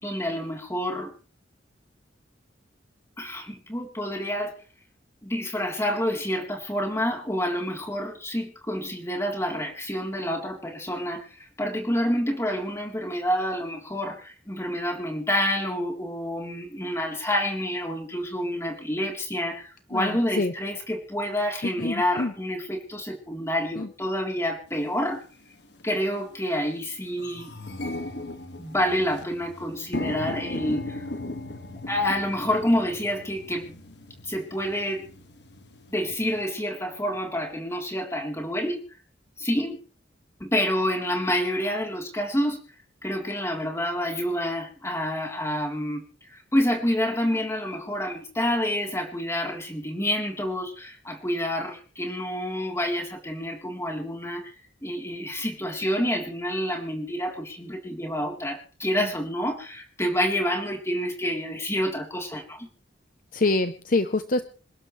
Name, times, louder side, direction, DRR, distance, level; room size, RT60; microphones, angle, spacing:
voice 1, 0.0-1.1 3.2-4.6 5.2-11.3 11.6-25.2 25.8-27.5 28.6-31.0 31.9-33.8 34.2-35.1 35.9-38.8 39.4-39.8 40.4-42.6 43.0-46.0 46.3-54.5 54.8-62.7, equal, 15° left, 1 dB, 3.6 m, -28 dB
voice 2, 19.9-20.5 21.6-22.3 23.8-23.9 63.3-64.5, left 2 dB, 45° left, 10 dB, 0.8 m, -26 dB
sound 1, 24.8-24.9 25.7-25.9 26.3-26.4 26.7-36.4, left 2 dB, 60° left, 1.8 m, -37 dB
27.5 x 12.0 x 3.3 m, 0.39 s
head